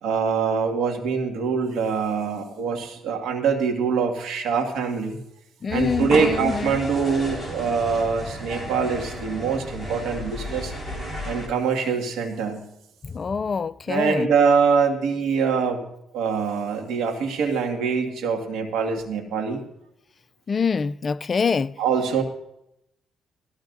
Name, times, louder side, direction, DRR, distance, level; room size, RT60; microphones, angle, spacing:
voice 1, 0.0-5.2 5.7-10.7 11.2-12.7 13.9-15.8 16.1-19.6 21.8-22.2, right 5 dB, 85° right, 1.9 m, -24 dB
voice 2, 5.6-6.8 13.0-14.3 20.5-21.7, left 5 dB, 40° left, 0.4 m, -25 dB
sound 1, 5.7-11.5, equal, 10° right, 4.8 m, -33 dB
17.5 x 14.5 x 2.6 m
cardioid pair, 90°, 0 cm